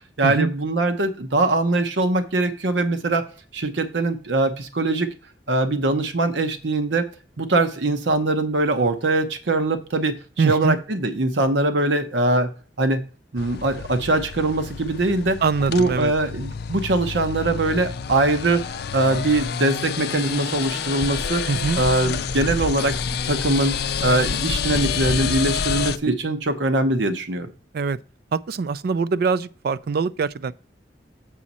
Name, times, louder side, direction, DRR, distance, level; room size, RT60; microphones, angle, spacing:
voice 1, 0.2-3.3 3.5-5.1 5.5-7.1 7.4-12.5 12.8-13.0 13.3-15.4 15.7-18.6 18.9-21.4 21.8-23.0 23.2-23.7 24.0-27.5, right 2 dB, 80° right, 0.9 m, -22 dB
voice 2, 10.4-10.8 15.4-16.1 21.4-21.8 27.7-28.0 28.3-30.5, right 5 dB, 55° right, 0.4 m, -23 dB
sound 1, 13.4-26.0, left 6 dB, 60° left, 0.5 m, -28 dB
7.5 x 6.1 x 4.2 m
head